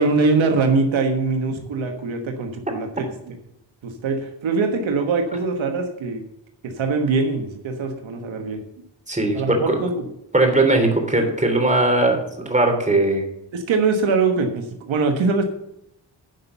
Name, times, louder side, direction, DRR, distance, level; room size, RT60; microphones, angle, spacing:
voice 1, 0.0-3.3 3.8-6.2 6.6-8.6 9.3-10.1 13.5-15.4, right 4 dB, 90° right, 5 dB, 1.4 m, -22 dB
voice 2, 9.1-9.8 10.3-13.2, right 2 dB, 15° right, 3 dB, 3.3 m, -19 dB
11.0 x 5.5 x 6.9 m, 0.80 s
cardioid pair, 65°, 45 cm